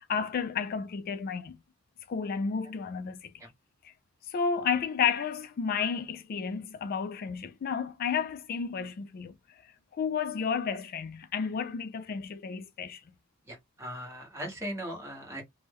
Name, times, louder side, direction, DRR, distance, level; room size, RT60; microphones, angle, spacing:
voice 1, 0.1-1.6 2.1-3.3 3.8-3.9 4.3-9.3 10.0-13.0, left 6 dB, 45° left, 0.3 m, -31 dB
voice 2, 13.5-15.4, equal, 15° right, 1.3 m, -39 dB
3.0 x 2.1 x 3.4 m
head